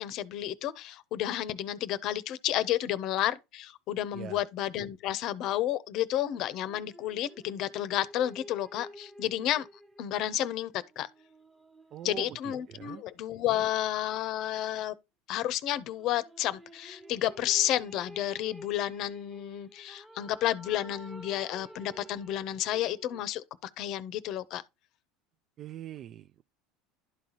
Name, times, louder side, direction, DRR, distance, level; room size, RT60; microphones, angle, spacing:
voice 1, 0.0-9.7 10.0-11.1 12.0-14.9 15.3-24.6, left 12 dB, 55° left, 0.6 m, -31 dB
sound 1, 6.3-13.9 15.8-23.2, equal, 15° right, 1.1 m, -51 dB
voice 2, 11.9-12.3 12.7-13.0 25.6-26.4, right 11 dB, 45° right, 0.3 m, -42 dB
11.5 x 4.0 x 2.9 m
supercardioid pair, 100°, 0 cm